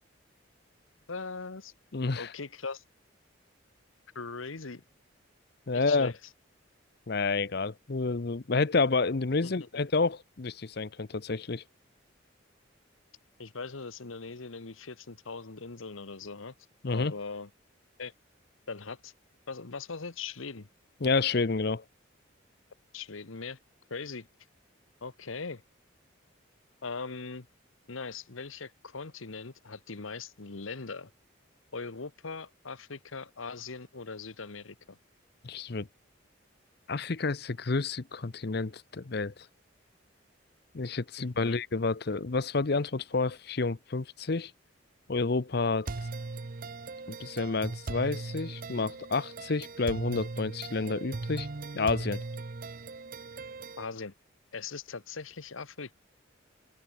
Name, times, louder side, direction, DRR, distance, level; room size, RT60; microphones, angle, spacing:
voice 1, 1.1-1.7 2.2-2.8 4.1-4.8 5.7-6.2 9.4-9.5 13.4-16.5 16.9-17.5 18.0-18.1 18.7-19.1 19.5-20.7 22.9-23.6 23.9-24.3 25.0-25.6 26.8-27.5 27.9-31.1 31.7-35.0 41.2-41.6 53.8-54.1 54.5-55.9, left 4 dB, 85° left, 1.3 m, -40 dB
voice 2, 1.9-2.3 5.7-6.1 7.1-11.6 16.8-17.1 21.0-21.8 35.4-35.9 36.9-39.3 40.7-44.5 45.1-45.9 47.1-51.5 51.7-52.2, left 3 dB, 55° left, 0.7 m, -29 dB
sound 1, 45.9-53.9, right 3 dB, 45° right, 0.6 m, -39 dB
head